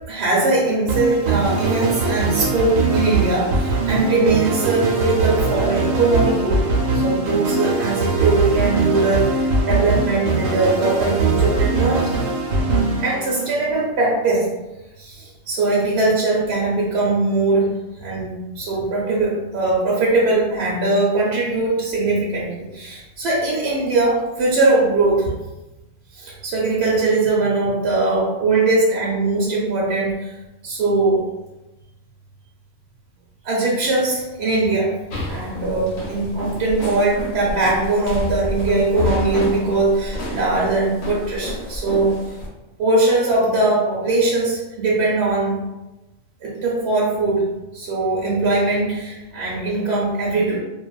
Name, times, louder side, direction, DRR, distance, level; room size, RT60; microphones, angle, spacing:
voice 1, 0.1-6.6 6.9-12.2 13.0-14.5 15.0-17.7 18.0-25.3 26.2-30.3 30.6-31.2 33.4-35.0 35.3-42.2 42.8-45.6 46.4-47.4 47.7-50.6, right 2 dB, 65° right, -4 dB, 0.8 m, -20 dB
sound 1, 0.9-13.8, right 3 dB, 85° right, 1.0 m, -21 dB
sound 2, 35.1-42.5, left 2 dB, 85° left, 1.0 m, -29 dB
2.6 x 2.2 x 2.3 m, 1.0 s
omnidirectional pair, 1.3 m